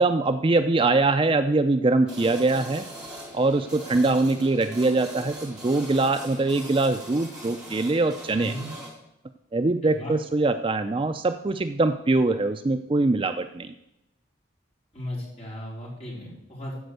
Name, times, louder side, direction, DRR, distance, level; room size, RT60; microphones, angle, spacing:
voice 1, 0.0-2.8 3.3-8.5 9.5-13.7, right 2 dB, 25° right, 9 dB, 0.4 m, -23 dB
sound 1, 2.1-8.9, right 1 dB, 5° right, 2.5 m, -41 dB
voice 2, 8.3-8.7 9.8-10.1 14.9-16.7, equal, 30° left, -5 dB, 4.4 m, -36 dB
14.0 x 5.2 x 8.1 m, 0.87 s
head